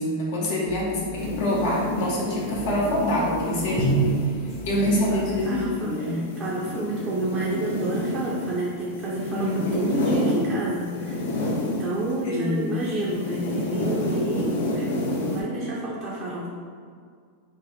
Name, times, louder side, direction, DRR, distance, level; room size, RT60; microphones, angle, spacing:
voice 1, 0.0-4.1 4.7-6.2 9.4-9.9 12.2-12.9, left 1 dB, 55° left, -4 dB, 0.8 m, -26 dB
sound 1, 0.6-5.8, right 3 dB, 30° left, 1.1 m, -42 dB
sound 2, 1.2-12.3 12.5-15.4, left 1 dB, 80° left, 0.7 m, -30 dB
Drum, 3.8-5.5, right 4 dB, 5° left, 0.8 m, -27 dB
voice 2, 4.8-5.2 5.4-16.5, right 1 dB, 20° right, -6 dB, 0.5 m, -30 dB
3.6 x 2.6 x 3.5 m, 2.1 s
supercardioid pair, 165°, 0 cm